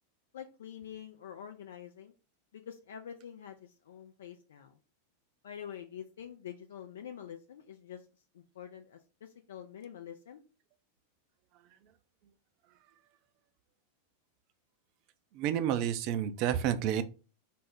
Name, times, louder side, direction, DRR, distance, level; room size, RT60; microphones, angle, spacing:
voice 1, 0.3-2.1 2.5-4.8 5.4-8.0 8.3-10.4, left 9 dB, 60° left, 6 dB, 0.3 m, -46 dB
voice 2, 15.3-17.0, right 10 dB, 45° right, 11 dB, 0.4 m, -30 dB
4.1 x 2.0 x 3.5 m, 0.34 s
figure-of-eight pair, 90°, 0 cm